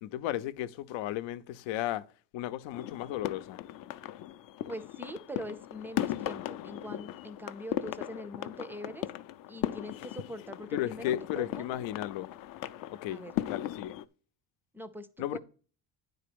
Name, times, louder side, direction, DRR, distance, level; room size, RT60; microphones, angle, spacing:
voice 1, 0.0-2.0 2.3-3.6 10.7-12.3 12.9-14.0 15.2-15.4, left 13 dB, 80° left, 0.7 m, -35 dB
sound 1, 2.7-14.0, left 13 dB, 50° left, 0.5 m, -38 dB
voice 2, 4.7-9.1 9.5-11.6 13.1-13.3 14.7-15.4, equal, 5° right, 0.4 m, -43 dB
9.9 x 4.1 x 6.8 m
cardioid pair, 160°, 45 cm